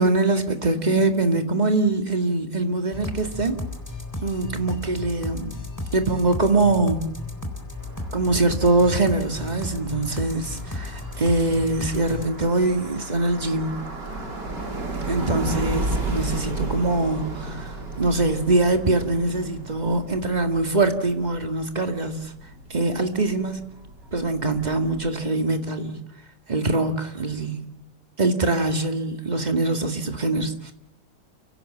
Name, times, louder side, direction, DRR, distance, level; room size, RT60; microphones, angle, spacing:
voice 1, 0.0-3.6 4.2-5.6 5.9-7.1 8.1-13.8 15.1-17.7 18.0-22.3 22.7-23.6 24.1-26.0 26.5-27.6 28.2-30.7, right 2 dB, 25° right, 2.1 m, -23 dB
sound 1, 2.9-12.3, left 2 dB, 10° left, 3.8 m, -34 dB
sound 2, 7.8-25.1, right 2 dB, 90° right, 4.0 m, -34 dB
29.5 x 17.0 x 7.5 m
omnidirectional pair, 1.8 m